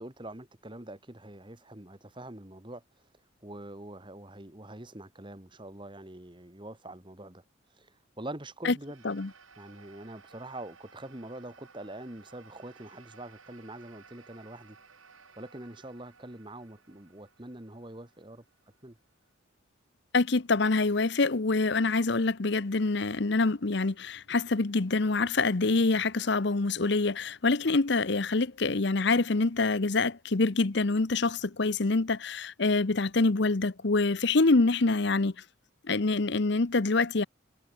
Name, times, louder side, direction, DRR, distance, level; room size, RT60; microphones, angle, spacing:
voice 1, 0.0-2.8 3.4-7.4 7.8-9.0 9.6-14.8 15.4-18.4 18.8-19.0, right 1 dB, 25° right, 1.7 m, -44 dB
sound 1, 8.7-19.3, right 5 dB, 85° right, 5.9 m, -57 dB
voice 2, 20.1-35.3 35.8-37.2, left 3 dB, 55° left, 0.8 m, -26 dB
head